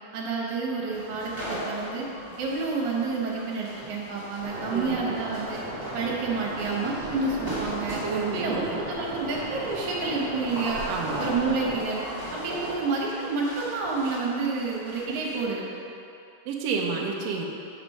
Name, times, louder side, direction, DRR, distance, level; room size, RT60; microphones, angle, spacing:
voice 1, 0.1-2.1 2.4-5.6 5.9-8.0 8.3-10.8 11.2-12.0 12.3-15.6, right 4 dB, 65° right, -3 dB, 2.4 m, -29 dB
sound 1, 0.9-15.4, equal, 15° right, 0.7 m, -39 dB
sound 2, 4.4-11.8, right 1 dB, 45° right, 2.5 m, -36 dB
voice 2, 8.0-8.8 10.9-11.2 16.5-17.5, right 5 dB, 85° right, 0 dB, 1.4 m, -29 dB
6.2 x 6.0 x 5.5 m, 2.7 s
omnidirectional pair, 3.8 m